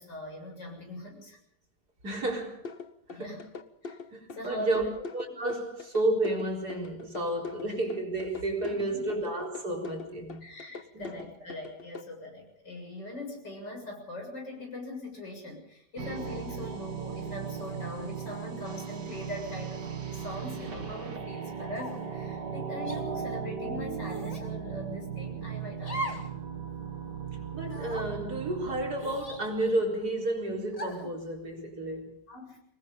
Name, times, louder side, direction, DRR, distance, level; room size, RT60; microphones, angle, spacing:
voice 1, 0.0-1.4 3.1-3.4 3.8-4.0 4.3-4.9 8.7-9.1 10.4-26.3 32.3-32.6, left 1 dB, 90° left, 7.8 m, -41 dB
voice 2, 2.0-2.6 3.1-3.4 4.1-4.9 5.1-10.4 10.9-11.1 27.5-32.2, right 1 dB, 65° right, 4.9 m, -31 dB
sound 1, 2.6-12.0, left 4 dB, 40° left, 1.0 m, -43 dB
sound 2, 16.0-30.1, right 7 dB, 85° right, 3.0 m, -37 dB
sound 3, 21.7-22.1 22.8-23.0 24.0-24.5 25.8-26.3 26.7-26.8 27.6-28.1 29.0-29.9 30.7-31.1, right 1 dB, 20° left, 2.4 m, -39 dB
25.0 x 20.5 x 5.3 m
omnidirectional pair, 1.8 m